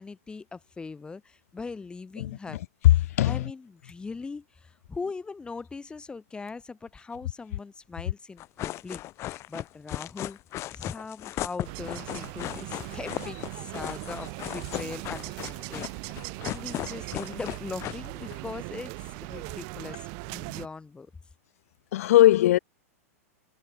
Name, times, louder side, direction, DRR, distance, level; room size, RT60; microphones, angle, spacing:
voice 1, 0.0-2.6 3.2-9.0 9.5-10.4 10.7-15.9 16.4-21.1, left 4 dB, 10° left, 3.6 m, -40 dB
voice 2, 2.8-3.5 21.9-22.6, left 14 dB, 70° left, 3.3 m, -19 dB
sound 1, 8.4-18.4, left 15 dB, 35° left, 2.0 m, -36 dB
sound 2, 11.6-20.7, right 40 dB or more, 45° right, 1.9 m, -39 dB
hypercardioid pair, 135°, 8 cm